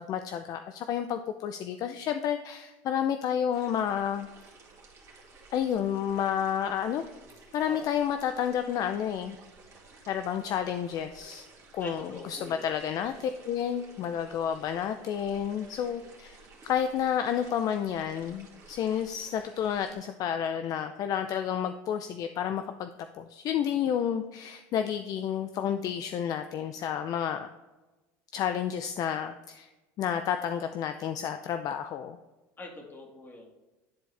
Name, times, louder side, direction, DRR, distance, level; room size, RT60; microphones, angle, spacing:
voice 1, 0.0-4.3 5.5-7.0 7.5-9.4 10.1-11.5 11.7-16.4 16.6-27.5 28.3-29.7 30.0-32.2, left 9 dB, 50° left, 8 dB, 0.5 m, -30 dB
sound 1, 3.5-20.0, right 3 dB, 35° right, 2.1 m, -54 dB
voice 2, 11.8-12.6 32.6-33.5, left 2 dB, 25° left, 0 dB, 2.1 m, -43 dB
10.5 x 4.5 x 3.4 m, 1.1 s
supercardioid pair, 110°, 8 cm